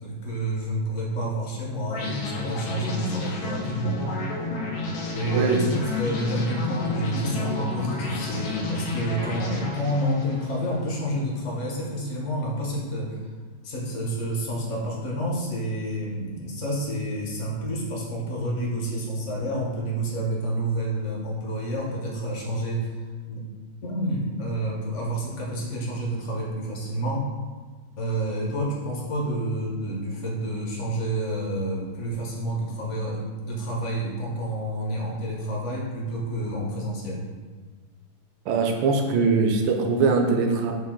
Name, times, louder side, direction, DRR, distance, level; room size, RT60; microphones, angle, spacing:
voice 1, 0.0-4.0 5.1-13.2 13.6-23.4 23.8-27.3 28.0-37.2, right 1 dB, 55° left, -3 dB, 0.9 m, -29 dB
sound 1, 1.9-11.0, left 3 dB, 85° left, 1.6 m, -31 dB
voice 2, 5.3-5.6 38.5-40.7, right 4 dB, 75° right, 2 dB, 1.2 m, -22 dB
5.8 x 2.6 x 3.6 m, 1.4 s
omnidirectional pair, 2.2 m